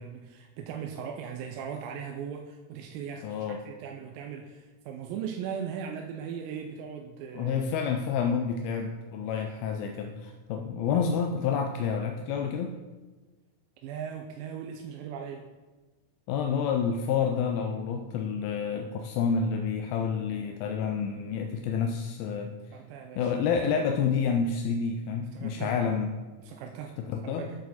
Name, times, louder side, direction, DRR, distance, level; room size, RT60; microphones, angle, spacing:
voice 1, 0.0-7.7 13.8-15.4 22.7-23.3 25.3-25.8 26.4-27.0 27.2-27.6, right 7 dB, 80° right, 3 dB, 2.2 m, -38 dB
voice 2, 3.2-3.6 7.3-12.8 16.3-22.5 23.2-26.1 27.0-27.5, left 6 dB, 90° left, 4 dB, 2.4 m, -29 dB
9.2 x 6.3 x 4.1 m, 1.3 s
omnidirectional pair, 4.2 m